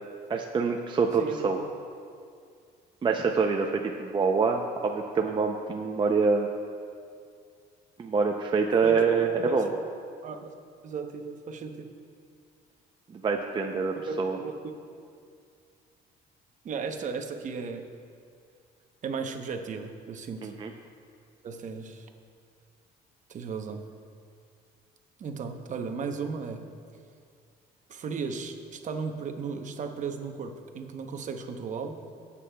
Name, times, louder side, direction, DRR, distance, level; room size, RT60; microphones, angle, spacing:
voice 1, 0.3-1.6 3.0-6.5 8.0-9.7 13.1-14.4 20.4-20.7, right 5 dB, 30° right, 3 dB, 0.6 m, -26 dB
voice 2, 1.2-1.6 8.8-9.1 9.3-9.6 10.2-10.5 10.8-11.9 14.0-14.5 16.6-17.8 19.0-20.5 21.4-22.1 23.3-23.8 25.2-26.6 27.9-32.1, right 5 dB, 45° right, 5 dB, 0.9 m, -35 dB
18.5 x 8.4 x 2.3 m, 2.3 s
cardioid pair, 110°, 17 cm